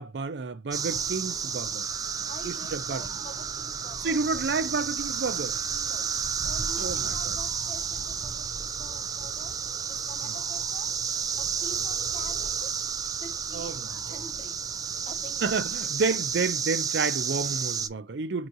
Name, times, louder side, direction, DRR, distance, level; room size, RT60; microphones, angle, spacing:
voice 1, 0.0-1.9 2.4-3.0 4.0-5.6 6.8-7.4 10.2-10.3 13.5-14.0 15.4-18.5, right 4 dB, 80° right, 0.5 m, -30 dB
sound 1, 0.7-17.9, right 6 dB, 20° right, 0.3 m, -31 dB
voice 2, 2.3-4.4 5.7-6.1 6.4-9.6 9.9-11.0 11.4-12.8 13.2-14.6 15.0-15.6, left 1 dB, 30° left, 0.7 m, -47 dB
5.6 x 2.9 x 2.6 m
head